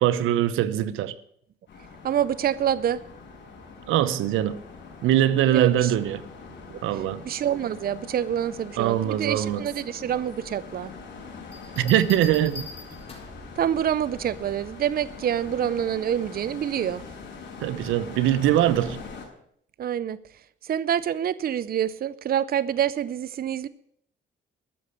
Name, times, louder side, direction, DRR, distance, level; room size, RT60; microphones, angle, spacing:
voice 1, 0.0-1.2 3.9-4.6 5.0-6.2 6.8-7.2 8.8-9.7 11.8-12.7 17.6-19.0, right 12 dB, 90° right, 0.8 m, -22 dB
sound 1, 1.7-19.3, left 4 dB, 60° left, 5.3 m, -43 dB
voice 2, 2.0-3.0 5.5-5.9 6.7-6.8 7.2-10.9 13.6-17.0 19.8-20.2 20.6-23.7, right 9 dB, 50° right, 0.6 m, -26 dB
Bell, 11.5-13.5 15.1-15.4, left 4 dB, 30° left, 4.4 m, -42 dB
13.0 x 6.7 x 9.9 m
cardioid pair, 90°, 20 cm